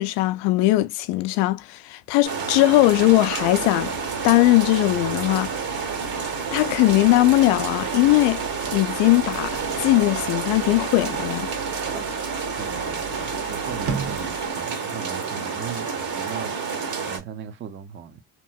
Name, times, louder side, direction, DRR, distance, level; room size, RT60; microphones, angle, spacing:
voice 1, 0.0-3.9 4.2-5.5 6.5-8.4 8.7-11.5, left 18 dB, 75° left, 0.5 m, -19 dB
sound 1, 2.2-17.2, right 5 dB, 55° right, 1.4 m, -29 dB
sound 2, 2.5-14.6, right 4 dB, 85° right, 1.1 m, -39 dB
voice 2, 12.6-18.2, right 8 dB, 30° right, 0.5 m, -38 dB
2.9 x 2.6 x 2.2 m
supercardioid pair, 85°, 42 cm